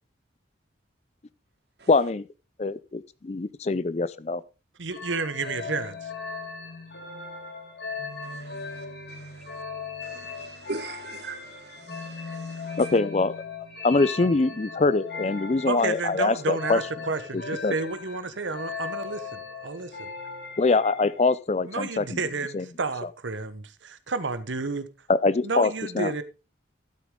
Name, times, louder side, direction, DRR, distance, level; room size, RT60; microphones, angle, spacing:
voice 1, 1.9-2.3 2.6-4.4 12.8-13.4 13.8-16.8 17.3-17.7 20.6-22.2 22.5-22.6 25.1-26.1, left 3 dB, 35° left, 0.4 m, -24 dB
voice 2, 4.8-6.1 15.7-20.1 21.6-24.9 25.4-26.2, right 3 dB, 80° right, 1.0 m, -31 dB
sound 1, 4.9-21.3, left 4 dB, 60° left, 2.0 m, -38 dB
voice 3, 8.2-9.6 10.0-12.8, right 3 dB, 60° right, 1.4 m, -41 dB
12.5 x 8.3 x 3.7 m
head